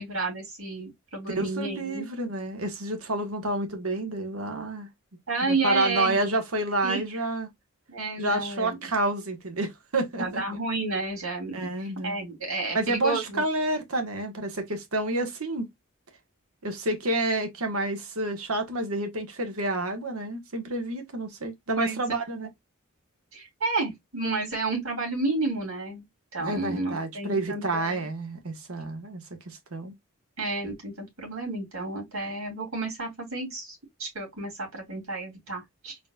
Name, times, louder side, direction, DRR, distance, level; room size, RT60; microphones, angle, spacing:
voice 1, 0.0-2.1 5.3-6.2 6.8-7.2 7.9-8.8 10.2-13.4 21.8-22.0 23.3-26.0 26.3-28.1 30.4-36.0, right 3 dB, 70° right, 2.9 m, -31 dB
voice 2, 1.4-4.9 5.4-7.5 8.2-10.4 11.5-12.2 12.7-15.7 16.6-22.5 26.4-29.9, right 2 dB, 90° right, 1.4 m, -29 dB
4.1 x 4.0 x 2.3 m
head